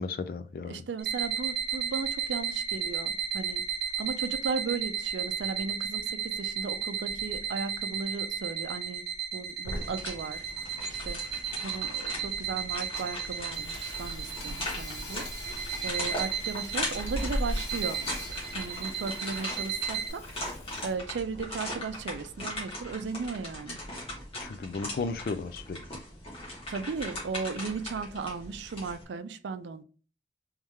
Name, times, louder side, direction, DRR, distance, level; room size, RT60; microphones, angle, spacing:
voice 1, 0.0-0.8 24.4-25.8, left 4 dB, 55° left, 12 dB, 0.3 m, -34 dB
voice 2, 0.6-3.6 4.0-9.1 9.3-10.4 10.9-11.2 11.6-15.3 15.8-18.0 18.5-20.2 20.8-23.8 26.7-29.8, right 4 dB, 85° right, 11 dB, 0.4 m, -36 dB
sound 1, 1.0-20.1, right 6 dB, 55° right, 1.0 m, -34 dB
sound 2, 9.6-29.0, left 1 dB, 30° left, 1.4 m, -39 dB
Hammer / Sawing, 13.0-21.1, left 3 dB, 70° left, 0.9 m, -46 dB
3.6 x 3.2 x 3.1 m, 0.37 s
head